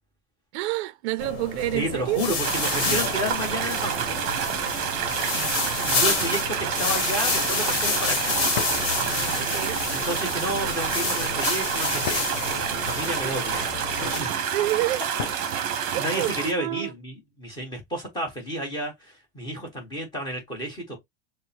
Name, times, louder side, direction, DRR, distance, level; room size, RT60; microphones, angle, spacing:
voice 1, 0.5-2.2 9.4-9.8 14.5-15.0 15.9-16.3 16.6-16.9, right 17 dB, 60° right, 0.5 m, -28 dB
sound 1, 1.2-14.2, left 4 dB, 35° left, 1.5 m, -29 dB
voice 2, 1.7-4.3 5.8-8.5 9.9-14.3 15.7-21.0, right 1 dB, 10° left, 1.3 m, -31 dB
sound 2, 2.4-16.5, right 8 dB, 35° right, 0.9 m, -28 dB
sound 3, 7.2-7.6 8.5-8.9 10.4-10.9 12.1-12.4 13.8-14.2 15.2-15.5, left 9 dB, 60° left, 0.7 m, -36 dB
6.3 x 2.2 x 2.9 m
supercardioid pair, 165°, 37 cm